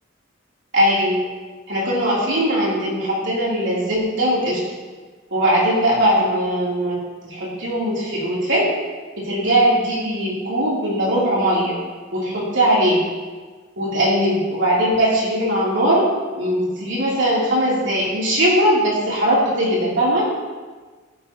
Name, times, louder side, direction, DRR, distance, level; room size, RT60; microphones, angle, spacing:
voice 1, 0.7-1.2 1.7-4.6 5.3-6.9 7.2-8.6 9.2-11.7 12.1-13.0 13.8-16.0 16.4-20.2, equal, 65° right, -6 dB, 3.1 m, -20 dB
11.5 x 9.5 x 2.9 m, 1.4 s
head